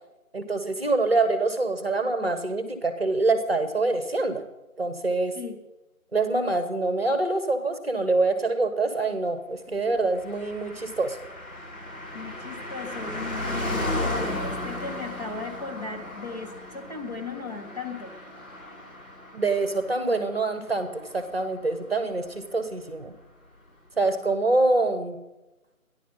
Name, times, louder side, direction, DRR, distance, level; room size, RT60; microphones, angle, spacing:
voice 1, 0.3-4.4 4.8-5.3 6.1-11.2 19.3-23.1 24.0-25.2, right 3 dB, 45° right, 8 dB, 1.3 m, -25 dB
Car passing by, 10.1-22.0 22.2-22.3, left 1 dB, 65° left, 5.5 m, -35 dB
voice 2, 12.1-18.1, left 4 dB, 30° left, -2 dB, 1.6 m, -36 dB
13.5 x 11.0 x 5.6 m, 1.0 s
figure-of-eight pair, 175°, 43 cm